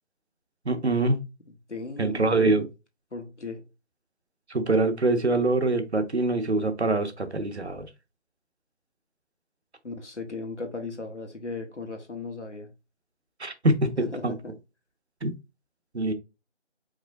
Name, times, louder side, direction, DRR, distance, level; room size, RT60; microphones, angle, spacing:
voice 1, 0.6-1.2 2.0-2.7 4.5-7.9 13.4-14.3 15.2-15.3 15.9-16.1, right 2 dB, 65° right, 1.0 m, -24 dB
voice 2, 1.7-2.6 3.1-3.6 9.8-12.7 14.0-14.5, left 3 dB, 80° left, 1.5 m, -36 dB
4.9 x 3.6 x 2.6 m
figure-of-eight pair, 165°, 35 cm